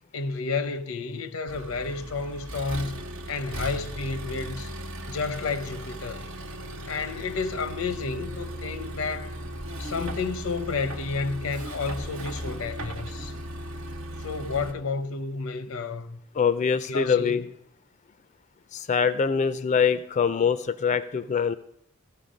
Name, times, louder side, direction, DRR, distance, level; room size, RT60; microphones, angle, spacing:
voice 1, 0.1-3.0 3.3-4.7 5.1-6.2 6.9-9.4 9.8-13.4 14.2-16.2 16.9-17.4, left 4 dB, 90° left, 0.7 m, -31 dB
Accelerating revving vroom, 1.5-14.7, equal, 85° right, 1.1 m, -37 dB
voice 2, 16.3-17.5 18.7-21.5, left 6 dB, 35° left, 0.4 m, -24 dB
15.0 x 5.8 x 5.0 m
head